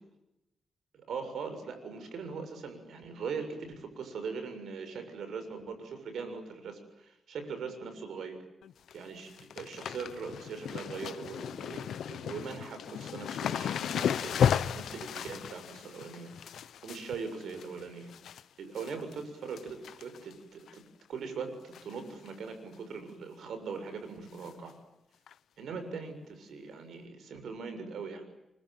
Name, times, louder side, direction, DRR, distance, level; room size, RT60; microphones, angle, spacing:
voice 1, 0.9-8.4 8.9-16.3 16.8-18.1 18.6-20.8 21.1-24.7 25.6-28.3, right 5 dB, 80° right, 8 dB, 7.1 m, -41 dB
sound 1, 8.6-8.9 9.2-18.4 18.8-19.2 19.5-20.3 20.7-20.8 21.7-22.0 22.3-22.4 22.7-22.8 24.4-24.5 25.3-25.4, left 9 dB, 90° left, 1.0 m, -34 dB
30.0 x 24.5 x 7.7 m, 0.91 s
wide cardioid pair, 150°, 0 cm